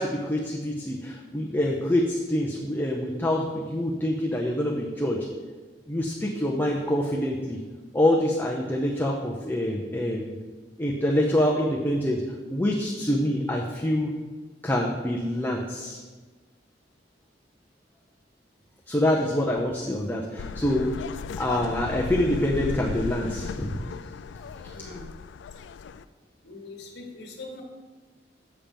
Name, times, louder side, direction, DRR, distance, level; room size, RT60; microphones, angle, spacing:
voice 1, 0.0-5.2 5.9-7.6 7.9-10.4 10.8-12.2 12.5-14.1 14.6-16.0 18.9-20.9 21.4-23.8, left 1 dB, 10° left, -2 dB, 0.6 m, -26 dB
sound 1, 20.4-26.0, left 5 dB, 85° left, 0.3 m, -36 dB
voice 2, 24.7-25.1 26.4-27.6, left 2 dB, 65° left, 2 dB, 1.3 m, -42 dB
7.3 x 5.7 x 5.2 m, 1.3 s
head